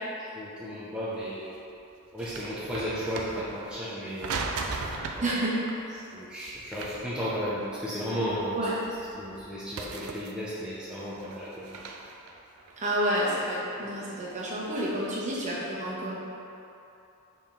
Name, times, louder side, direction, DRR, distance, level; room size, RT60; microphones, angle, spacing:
voice 1, 0.3-1.6 2.1-4.4 5.1-5.4 6.1-8.7 9.1-11.8, equal, 5° right, -10 dB, 0.6 m, -34 dB
sound 1, 1.2-1.3 1.6-3.8 4.2-5.3 5.6-5.8 6.5-8.0 8.2-9.5 9.8-10.6 11.0-13.6 14.1-15.5, right 3 dB, 85° right, 0.5 m, -39 dB
voice 2, 5.2-5.5 8.5-8.7 12.8-16.2, right 1 dB, 35° right, -7 dB, 1.2 m, -29 dB
7.0 x 3.7 x 3.6 m, 2.8 s
head